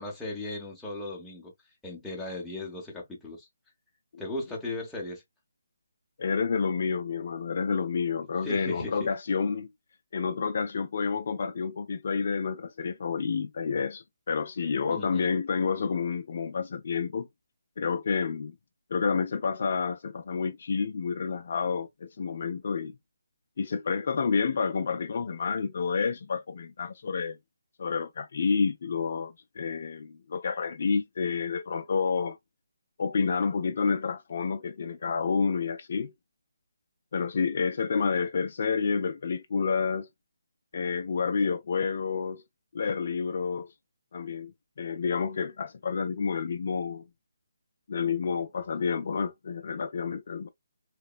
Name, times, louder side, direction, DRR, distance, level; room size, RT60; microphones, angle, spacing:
voice 1, 0.0-1.5 1.8-3.5 4.2-5.2 8.4-9.1 14.9-15.3, left 2 dB, 5° left, 0.7 m, -37 dB
voice 2, 6.2-9.7 10.1-17.3 17.8-18.5 18.9-23.0 23.6-27.4 27.8-32.4 33.0-36.1 37.1-40.1 40.7-42.4 42.7-43.7 44.1-47.0 47.9-50.5, left 5 dB, 50° left, 0.3 m, -29 dB
2.9 x 2.0 x 2.3 m
hypercardioid pair, 165°, 0 cm